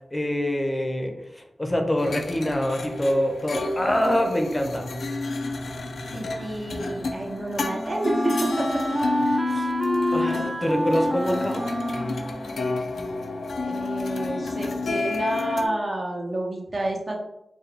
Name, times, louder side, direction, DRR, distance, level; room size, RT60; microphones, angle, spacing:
voice 1, 0.1-4.9 9.5-9.7 10.1-11.7, equal, 25° left, 3 dB, 0.6 m, -25 dB
sound 1, 2.0-15.7, left 3 dB, 90° left, 0.4 m, -30 dB
voice 2, 6.1-8.5 13.6-17.2, right 1 dB, 50° right, -1 dB, 1.0 m, -29 dB
Wind instrument woodwind instrument, 6.7-13.6, equal, 20° right, 0.5 m, -29 dB
4.5 x 2.2 x 3.3 m, 0.85 s
cardioid pair, 45°, 0 cm